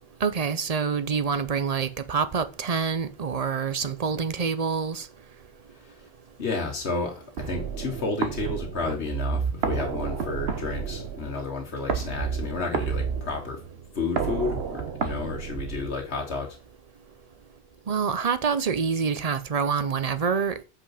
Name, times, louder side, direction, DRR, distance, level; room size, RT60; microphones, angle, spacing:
voice 1, 0.2-5.1 17.9-20.6, right 6 dB, 45° right, 0.6 m, -26 dB
voice 2, 6.4-13.6 13.9-16.6, left 4 dB, 85° left, 1.7 m, -31 dB
sound 1, 7.4-16.3, right 6 dB, 70° right, 1.2 m, -31 dB
8.0 x 5.8 x 4.9 m
omnidirectional pair, 1.1 m